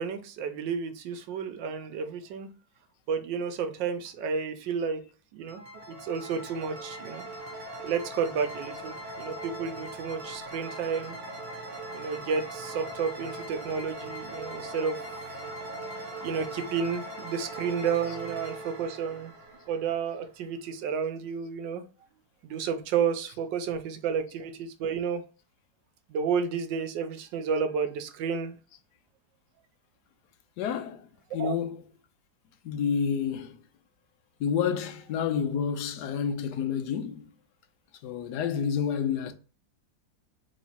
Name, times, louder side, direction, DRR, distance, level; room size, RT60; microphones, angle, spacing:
voice 1, 0.0-2.5 3.1-5.0 5.3-5.6 5.9-7.2 7.8-11.2 11.9-15.0 16.2-19.3 19.7-21.8 22.4-25.2 26.1-28.5 31.4-31.5, right 6 dB, 85° right, 1.3 m, -31 dB
sound 1, 5.4-20.3, right 1 dB, 40° right, 0.7 m, -40 dB
voice 2, 30.6-31.0 31.3-31.9 32.6-33.6 34.4-37.2 38.0-39.3, left 7 dB, 70° left, 1.2 m, -29 dB
3.6 x 3.1 x 4.1 m
omnidirectional pair, 2.0 m